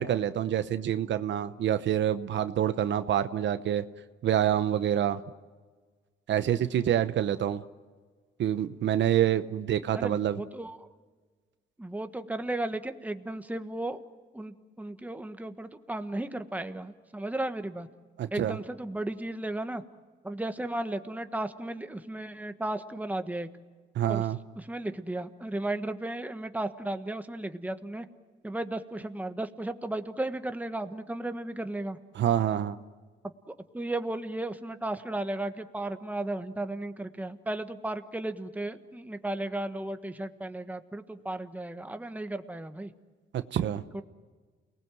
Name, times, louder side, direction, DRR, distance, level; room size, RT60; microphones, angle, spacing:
voice 1, 0.0-3.8 4.2-5.2 6.3-7.6 8.4-10.4 18.2-18.6 24.0-24.4 32.1-32.8 43.3-43.8, right 10 dB, 65° right, 11 dB, 0.9 m, -27 dB
voice 2, 9.9-10.8 11.8-14.0 14.3-17.9 18.3-19.8 20.2-23.5 24.1-24.3 24.6-28.1 28.4-32.0 33.7-42.9 43.9-44.0, right 1 dB, 10° right, 8 dB, 1.5 m, -35 dB
29.0 x 19.5 x 7.7 m, 1.4 s
cardioid pair, 90°, 20 cm